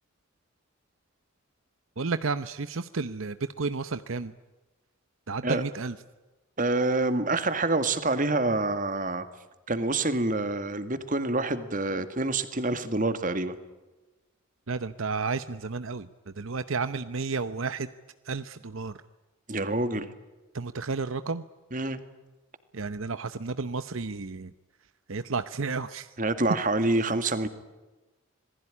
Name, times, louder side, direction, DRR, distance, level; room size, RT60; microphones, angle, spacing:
voice 1, 2.0-4.3 5.3-6.0 14.7-17.9 18.2-18.9 20.5-21.4 22.7-24.5 25.1-26.1, right 4 dB, 70° right, 13 dB, 0.8 m, -32 dB
voice 2, 6.6-9.3 9.7-13.6 19.5-20.1 21.7-22.0 26.2-27.5, right 2 dB, 35° right, 11 dB, 2.1 m, -27 dB
27.0 x 20.5 x 10.0 m, 1.2 s
head